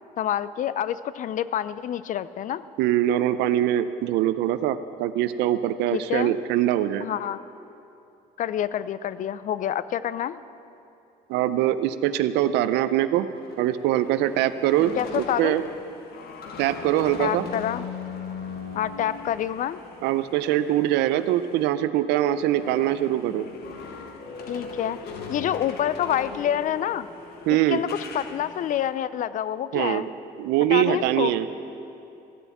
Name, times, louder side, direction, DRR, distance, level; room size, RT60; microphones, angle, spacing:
voice 1, 0.2-2.6 5.9-6.3 7.0-7.4 8.4-10.4 15.0-15.6 17.2-17.8 18.7-19.8 24.5-25.0 25.3-27.1 27.5-30.1 30.7-31.3, left 10 dB, 50° left, 16 dB, 0.5 m, -27 dB
voice 2, 2.8-7.1 11.3-13.3 13.6-15.6 16.6-17.5 20.0-23.5 27.5-27.8 29.7-30.1 30.4-31.5, right 12 dB, 90° right, 13 dB, 0.6 m, -23 dB
sound 1, 13.3-21.7 22.0-28.9, left 4 dB, 70° left, 1.5 m, -40 dB
15.0 x 7.0 x 8.4 m, 2.7 s
cardioid pair, 110°, 17 cm